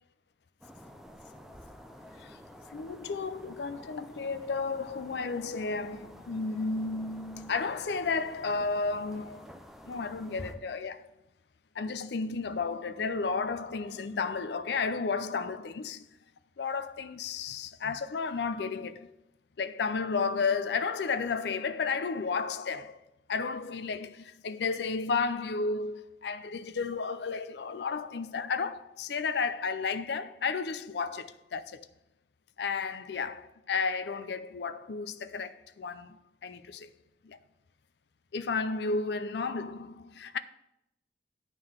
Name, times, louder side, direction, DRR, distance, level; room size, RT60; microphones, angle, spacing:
sound 1, 0.6-10.6, equal, ahead, 0.6 m, -50 dB
voice 1, 2.7-9.5 9.8-11.1 11.8-16.1 16.6-19.1 19.6-23.0 23.3-31.9 32.6-36.9 37.2-37.4 38.3-40.4, left 4 dB, 70° left, 0.4 m, -33 dB
9.7 x 3.8 x 6.3 m
head